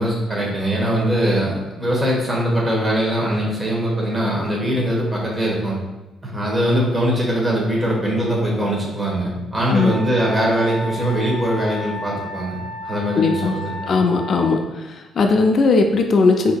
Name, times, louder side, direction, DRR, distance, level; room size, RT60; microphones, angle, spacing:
voice 1, 0.0-5.8 6.2-14.0, equal, 20° right, -4 dB, 1.1 m, -21 dB
Wind instrument woodwind instrument, 9.7-14.6, left 1 dB, 50° right, 0.4 m, -33 dB
voice 2, 13.1-13.6 13.9-14.6 14.9-16.5, left 4 dB, 55° left, 3 dB, 0.3 m, -17 dB
4.4 x 2.7 x 2.2 m, 1.1 s
cardioid pair, 90°, 0 cm